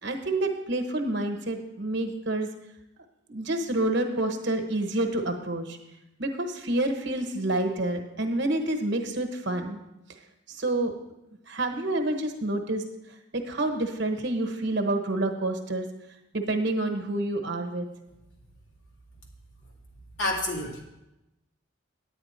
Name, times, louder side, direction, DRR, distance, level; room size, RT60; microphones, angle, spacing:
voice 1, 0.0-2.5 3.3-5.8 6.2-9.8 10.5-10.9 11.5-12.8 13.3-15.9 16.3-17.9, right 2 dB, 55° right, 5 dB, 1.1 m, -28 dB
voice 2, 20.2-20.8, left 2 dB, 65° left, -2 dB, 2.3 m, -28 dB
9.7 x 9.0 x 4.4 m, 0.92 s
head